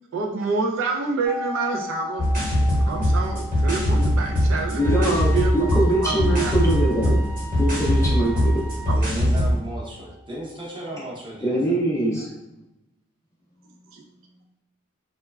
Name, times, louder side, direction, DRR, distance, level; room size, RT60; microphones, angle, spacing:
voice 1, 0.1-2.2 2.8-5.7 6.0-6.5 8.9-9.0 13.9-14.0, right 4 dB, 65° right, 1 dB, 0.4 m, -27 dB
sound 1, 1.2-11.0 11.2-11.3, left 4 dB, 80° right, 0.8 m, -39 dB
sound 2, 2.2-9.6, equal, 40° right, 1.1 m, -21 dB
Wind instrument woodwind instrument, 4.8-9.0, right 2 dB, 60° left, 0.7 m, -39 dB
voice 2, 4.8-7.2 7.6-8.7 11.4-12.3, right 1 dB, 15° left, -3 dB, 0.4 m, -23 dB
voice 3, 8.8-11.8, right 1 dB, 20° right, -4 dB, 0.7 m, -35 dB
3.1 x 2.2 x 2.2 m, 0.94 s
head